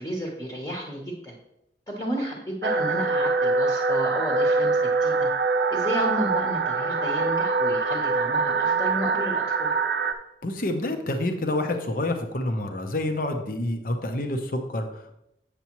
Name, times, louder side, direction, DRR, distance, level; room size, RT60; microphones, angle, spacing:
voice 1, 0.0-1.4 1.9-5.3 5.7-9.7, equal, 20° left, -2 dB, 1.0 m, -32 dB
sound 1, 2.6-10.1, right 4 dB, 55° right, 0.5 m, -24 dB
voice 2, 10.4-15.2, left 1 dB, 45° left, 6 dB, 0.8 m, -28 dB
8.4 x 6.8 x 3.0 m, 0.83 s
head